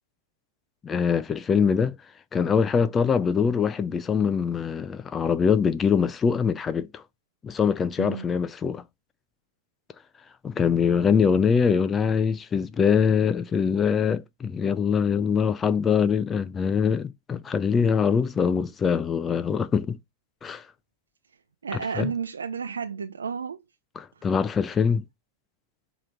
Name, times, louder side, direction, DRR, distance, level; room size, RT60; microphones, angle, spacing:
voice 1, 0.8-2.0 2.3-7.0 7.4-8.8 10.4-20.0 20.4-20.6 22.0-22.1 24.0-25.0, left 6 dB, 20° left, 0.4 m, -23 dB
voice 2, 21.6-23.6 24.2-24.3, right 6 dB, 90° right, 0.6 m, -32 dB
7.6 x 3.0 x 4.7 m
hypercardioid pair, 110°, 0 cm